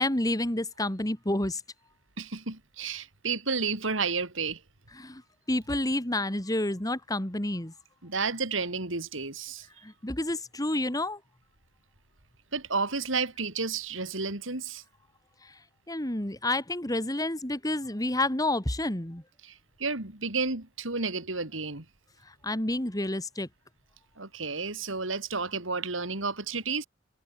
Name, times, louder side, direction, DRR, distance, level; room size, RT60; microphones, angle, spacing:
voice 1, 0.0-1.6 5.0-5.2 5.5-7.7 9.8-11.2 15.4-15.5 15.9-19.2 22.4-23.5, left 1 dB, 20° left, 2.4 m, -29 dB
voice 2, 2.2-4.6 8.0-9.7 12.5-14.8 19.4-21.9 24.2-26.9, right 4 dB, 80° right, 3.7 m, -31 dB
head